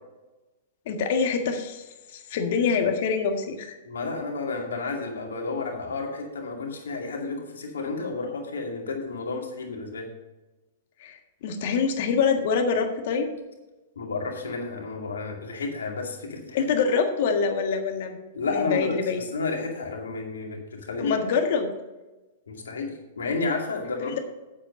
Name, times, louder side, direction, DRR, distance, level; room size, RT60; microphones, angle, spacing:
voice 1, 0.8-3.8 11.0-13.3 16.5-18.2 18.5-19.2 21.0-21.7 24.1-24.2, left 5 dB, 55° left, 5 dB, 1.6 m, -25 dB
voice 2, 3.8-10.0 14.0-16.6 18.3-21.1 22.5-24.2, left 3 dB, 75° left, 1 dB, 2.3 m, -31 dB
8.8 x 7.5 x 5.4 m, 1.1 s
figure-of-eight pair, 105°, 0 cm